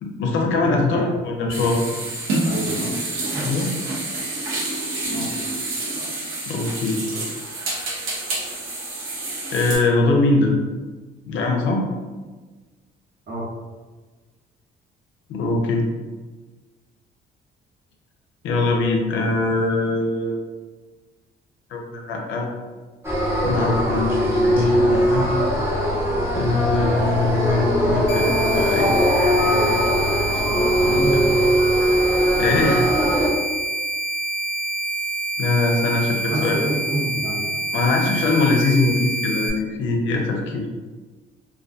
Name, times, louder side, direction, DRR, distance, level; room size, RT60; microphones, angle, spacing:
voice 1, 0.0-1.8 3.4-3.7 6.5-7.0 9.5-10.5 11.3-11.8 15.3-15.8 18.4-20.4 21.7-22.5 23.4-25.3 26.4-31.2 32.4-32.8 35.4-36.6 37.7-40.6, left 3 dB, 75° left, 1 dB, 0.5 m, -22 dB
voice 2, 0.5-1.2 2.4-3.0 3.3-3.5 5.1-5.3 13.3-13.4 30.7-31.6 32.6-32.8 36.1-37.6, right 1 dB, 60° right, -7 dB, 1.1 m, -28 dB
sound 1, 1.5-9.8, right 2 dB, 90° right, 0.7 m, -28 dB
sound 2, 23.0-33.3, equal, 10° right, 0.7 m, -20 dB
sound 3, 28.1-39.5, right 3 dB, 30° left, 0.7 m, -27 dB
2.3 x 2.2 x 2.5 m, 1.3 s
cardioid pair, 90°, 20 cm